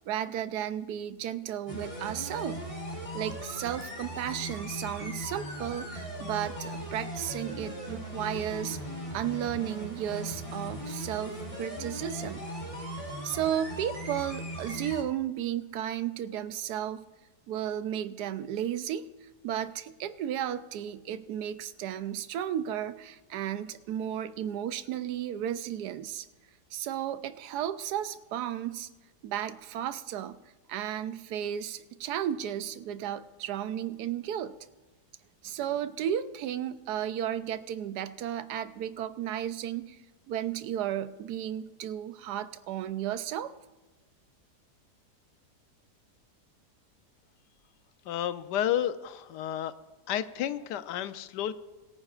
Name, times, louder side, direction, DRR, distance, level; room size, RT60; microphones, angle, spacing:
voice 1, 0.0-2.6 3.1-8.8 9.1-12.5 12.8-17.0 17.5-26.3 26.7-28.9 29.2-30.4 30.7-34.6 35.4-40.0 40.3-43.5, right 10 dB, 80° right, 13 dB, 1.2 m, -34 dB
sound 1, 1.7-15.0, equal, 20° left, 2.8 m, -38 dB
voice 2, 48.1-49.7 50.1-51.5, left 11 dB, 85° left, 12 dB, 1.2 m, -31 dB
22.0 x 9.8 x 2.4 m, 1.2 s
omnidirectional pair, 1.8 m